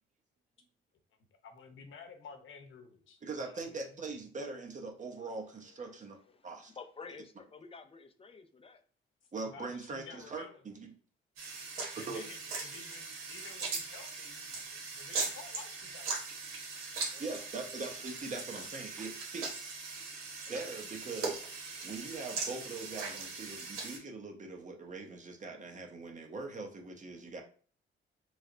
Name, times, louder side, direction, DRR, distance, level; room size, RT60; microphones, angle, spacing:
voice 1, 1.4-3.9 5.6-5.8 6.3-6.4 9.4-10.6 11.9-16.2 21.7-21.9 23.1-23.7, left 5 dB, 70° left, 5 dB, 0.8 m, -53 dB
voice 2, 3.2-6.2 6.4-6.7 9.3-10.9 12.1-12.2 17.2-19.7 20.5-21.4 21.8-27.4, right 3 dB, 35° right, 3 dB, 0.9 m, -42 dB
voice 3, 6.8-8.8 17.1-17.5 17.9-18.1 20.5-20.8, left 5 dB, 25° left, 7 dB, 0.5 m, -51 dB
sound 1, 11.4-24.0, right 4 dB, 85° right, 1.1 m, -40 dB
3.2 x 2.1 x 3.8 m, 0.43 s
cardioid pair, 80°, 21 cm